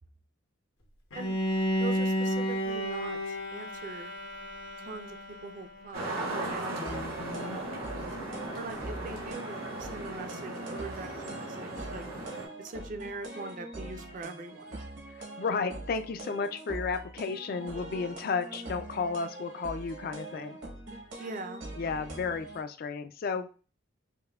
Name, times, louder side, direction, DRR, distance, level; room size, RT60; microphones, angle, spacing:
Bowed string instrument, 1.1-6.1, equal, 80° left, 0.8 m, -32 dB
voice 1, 1.8-4.1 4.8-6.9 8.5-12.1 12.6-14.8 21.2-21.6, right 3 dB, 40° right, 7 dB, 0.4 m, -42 dB
sound 1, 5.9-12.5, right 2 dB, 90° right, 1.3 m, -37 dB
voice 2, 6.7-7.6 15.1-20.6 21.8-23.5, left 4 dB, 45° left, 9 dB, 0.3 m, -33 dB
sound 2, 6.9-22.6, right 2 dB, 70° right, 1.0 m, -43 dB
5.4 x 2.1 x 2.3 m, 0.37 s
head